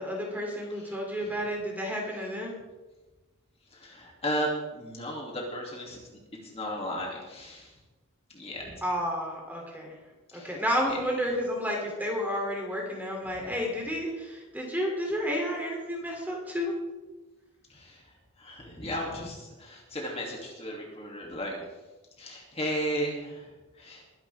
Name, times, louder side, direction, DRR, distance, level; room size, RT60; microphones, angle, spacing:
voice 1, 0.0-2.6 8.8-9.9 10.3-16.7, equal, 10° right, -1 dB, 3.0 m, -31 dB
voice 2, 0.7-1.4 3.7-7.8 8.3-8.8 10.3-10.6 10.9-11.0 11.3-11.4 17.7-21.7 22.2-24.0, equal, 30° left, -2 dB, 2.7 m, -35 dB
21.5 x 11.0 x 3.6 m, 1.1 s
head